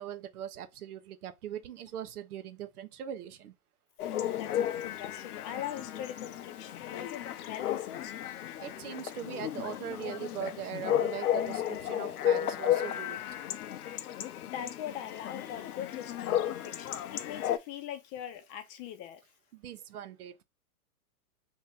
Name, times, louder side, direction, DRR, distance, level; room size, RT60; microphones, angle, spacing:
voice 1, 0.0-3.5 8.6-13.2 19.5-20.4, right 9 dB, 80° right, 0.7 m, -40 dB
Chatter / Bark / Livestock farm animals working animals, 4.0-17.6, left 11 dB, 75° left, 0.6 m, -34 dB
voice 2, 4.1-8.2 14.5-19.2, left 10 dB, 30° left, 0.6 m, -41 dB
2.9 x 2.6 x 3.4 m
hypercardioid pair, 120°, 44 cm